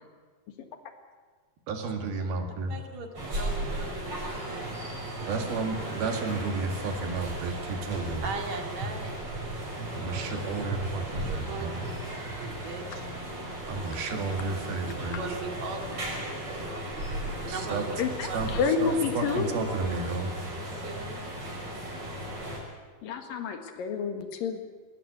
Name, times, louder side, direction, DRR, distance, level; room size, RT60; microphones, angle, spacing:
voice 1, 1.7-2.8 5.3-8.2 9.9-11.8 13.7-15.2 17.5-17.8 18.3-20.3, right 4 dB, 80° right, 4 dB, 4.0 m, -32 dB
voice 2, 2.7-3.1 3.3-4.7 5.1-5.4 8.2-9.3 11.1-13.1 14.9-17.2 17.5-18.0 18.2-18.4 18.9-19.0 19.3-19.4 20.5-21.2, right 4 dB, 50° right, 3 dB, 3.3 m, -40 dB
sound 1, 3.1-22.6, right 1 dB, 35° right, 6.6 m, -36 dB
voice 3, 18.0-19.5 23.0-24.6, left 5 dB, 70° left, 6 dB, 3.4 m, -29 dB
20.5 x 18.0 x 9.5 m, 1.5 s
omnidirectional pair, 4.4 m